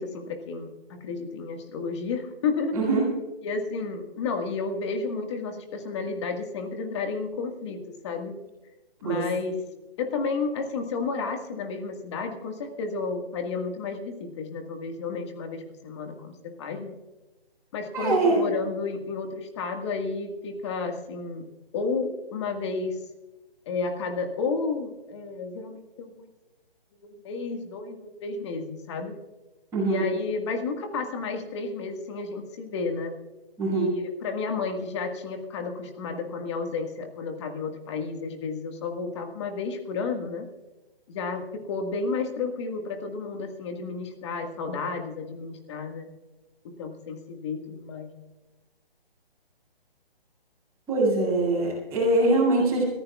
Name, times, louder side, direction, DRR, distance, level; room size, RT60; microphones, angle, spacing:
voice 1, 0.0-2.8 3.4-8.3 9.0-9.6 10.0-16.9 17.7-21.5 21.7-23.0 23.6-26.3 27.0-29.1 29.8-33.2 33.7-33.9 34.2-40.5 41.1-46.1 46.8-48.1, left 4 dB, 30° left, 5 dB, 1.7 m, -32 dB
voice 2, 2.7-3.1 9.0-9.2 17.9-18.4 29.7-30.0 33.6-33.9 50.9-52.8, right 2 dB, 10° right, -10 dB, 5.9 m, -23 dB
26.5 x 14.5 x 2.4 m, 1.1 s
hypercardioid pair, 155°, 30 cm